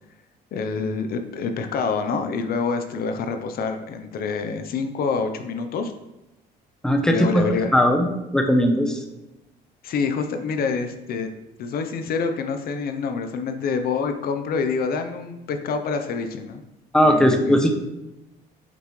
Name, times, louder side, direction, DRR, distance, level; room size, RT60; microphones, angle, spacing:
voice 1, 0.5-5.9 7.1-7.7 9.8-11.3 11.6-16.6 17.0-17.6, left 5 dB, 60° left, 7 dB, 0.8 m, -27 dB
voice 2, 6.8-8.1 8.3-9.0 16.9-17.7, equal, 5° left, 4 dB, 0.9 m, -18 dB
7.8 x 5.6 x 3.2 m, 0.95 s
cardioid pair, 110°, 17 cm